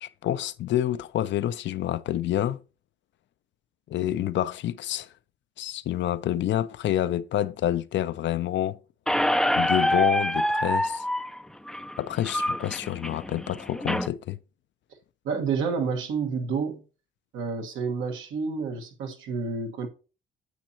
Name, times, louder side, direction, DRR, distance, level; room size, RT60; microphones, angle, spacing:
voice 1, 0.0-2.6 3.9-5.1 5.6-8.8 9.6-11.0 12.0-14.4, left 12 dB, 65° left, 0.5 m, -28 dB
Squeak, 9.1-14.1, equal, ahead, 0.4 m, -26 dB
voice 2, 15.2-16.8 17.3-19.9, right 5 dB, 85° right, 1.5 m, -29 dB
9.2 x 7.5 x 2.8 m
cardioid pair, 90°, 20 cm